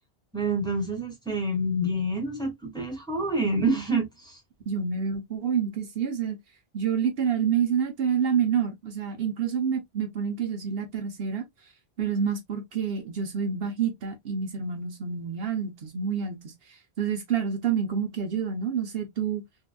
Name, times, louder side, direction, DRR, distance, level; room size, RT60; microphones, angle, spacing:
voice 1, 0.3-4.4, right 1 dB, 5° left, 1.4 m, -27 dB
voice 2, 4.7-6.4 6.7-11.4 12.0-16.5 17.0-19.4, right 7 dB, 70° right, 1.0 m, -28 dB
3.7 x 2.6 x 2.2 m
omnidirectional pair, 1.0 m